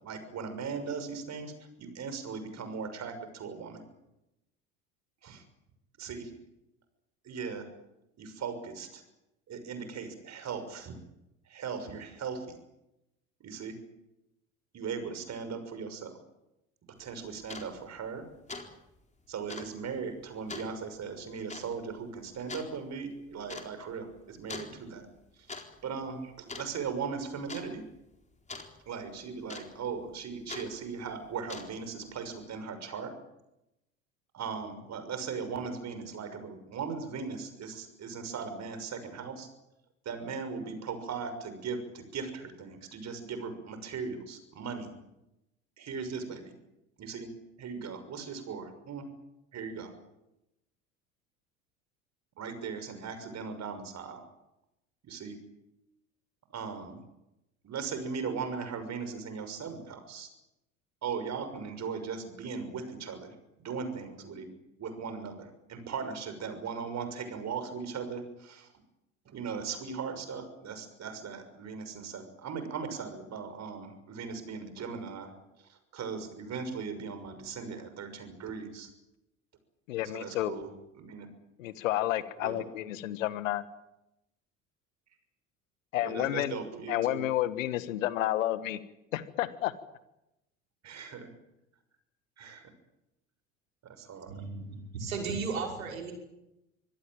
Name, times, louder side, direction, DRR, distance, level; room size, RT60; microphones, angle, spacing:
voice 1, 0.0-1.5 1.8-3.8 5.2-5.4 6.0-6.3 7.2-7.6 8.2-9.0 9.5-10.9 11.5-12.6 13.4-13.8 14.7-16.2 17.0-18.2 19.3-25.1 25.8-27.8 28.9-33.1 34.3-39.5 40.0-45.0 45.8-46.5 47.0-47.3 47.6-49.1 49.5-49.9 52.4-54.2 55.0-55.4 56.5-57.0 57.6-60.3 61.0-63.3 63.6-64.5 64.8-68.7 69.2-75.3 75.6-78.9 80.0-80.7 81.0-81.3 82.4-82.6 86.0-87.2 90.8-91.3 92.4-92.7 93.9-94.3, right 5 dB, 40° right, 9 dB, 6.3 m, -38 dB
sound 1, 17.0-17.1 17.4-17.7 18.1-18.2 18.5-18.7 19.0-19.1 19.5-19.7 20.5-20.7 21.5-21.7 22.5-22.7 23.5-23.7 24.5-24.7 25.3-25.7 25.9-26.2 26.5-27.0 27.5-27.7 28.5-28.7 29.5-29.9 30.5-30.7 31.3-31.9, left 3 dB, 15° left, 4.2 m, -42 dB
voice 2, 79.9-80.5 81.6-83.6 85.9-86.6 86.9-88.8 89.1-89.7, left 14 dB, 70° left, 15 dB, 1.6 m, -30 dB
voice 3, 94.3-96.1, right 4 dB, 80° right, 2 dB, 5.8 m, -35 dB
25.5 x 18.0 x 9.0 m, 0.89 s
figure-of-eight pair, 65°, 40 cm